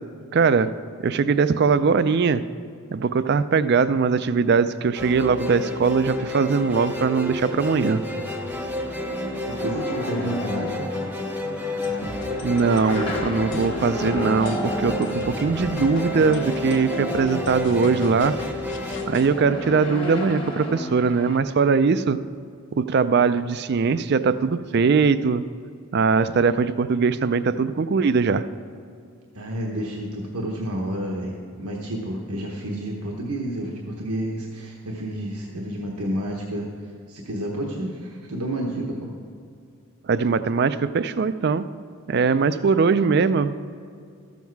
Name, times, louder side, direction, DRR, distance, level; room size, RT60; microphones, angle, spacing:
voice 1, 0.3-0.7 1.0-2.4 2.9-8.0 12.4-18.3 19.1-22.2 22.7-25.4 25.9-28.4 40.1-41.7 42.1-43.5, right 5 dB, 50° right, 13 dB, 0.4 m, -21 dB
sound 1, 4.9-20.2, left 1 dB, 5° right, 0.7 m, -31 dB
sound 2, 7.8-21.4, left 1 dB, 25° left, 1.0 m, -33 dB
voice 2, 9.5-10.9 29.3-36.7 37.1-39.1, right 1 dB, 85° right, -1 dB, 1.1 m, -30 dB
sound 3, 11.8-19.3, left 2 dB, 55° left, 1.1 m, -40 dB
13.5 x 7.3 x 4.6 m, 2.3 s
head